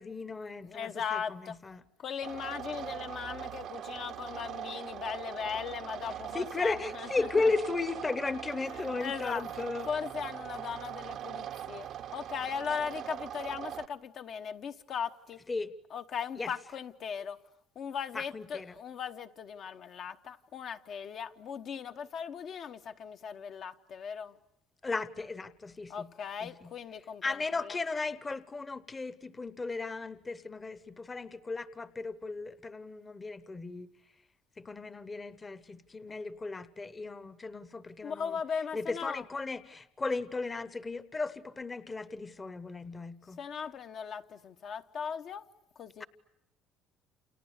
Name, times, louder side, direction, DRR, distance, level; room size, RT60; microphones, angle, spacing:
voice 1, 0.0-1.8 6.3-9.9 15.5-15.7 16.4-16.5 18.1-18.7 24.8-26.1 26.4-26.7 27.2-33.9 34.6-38.4 38.7-43.4 46.0-46.1, left 3 dB, 20° left, 1.0 m, -35 dB
voice 2, 0.6-1.6 2.0-7.5 8.5-15.4 15.9-17.4 17.7-24.4 25.9-27.8 38.0-39.3 43.4-45.4 45.8-46.0, left 7 dB, 45° left, 1.0 m, -38 dB
sound 1, 2.2-13.9, right 10 dB, 55° right, 0.9 m, -41 dB
29.5 x 29.5 x 6.6 m
cardioid pair, 150°, 0 cm